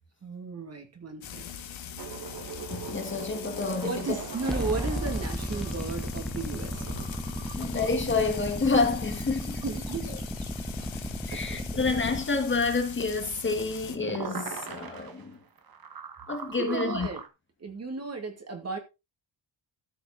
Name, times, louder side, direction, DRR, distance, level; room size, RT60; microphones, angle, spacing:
voice 1, 0.2-1.5 3.8-7.0 9.6-10.2 11.3-11.4 16.6-17.2 17.6-18.8, right 4 dB, 35° right, 2.5 m, -34 dB
Frying (food), 1.2-14.0, left 8 dB, 85° left, 1.8 m, -42 dB
sound 1, 2.0-12.0 12.3-12.4 12.6-17.3, right 6 dB, 50° right, 1.8 m, -42 dB
voice 2, 2.7-4.1 7.6-9.6 11.3-15.4 16.3-17.1, left 4 dB, 25° left, 1.7 m, -28 dB
sound 2, 4.5-12.2, equal, ahead, 0.6 m, -35 dB
13.5 x 7.9 x 4.0 m
wide cardioid pair, 180°, 45 cm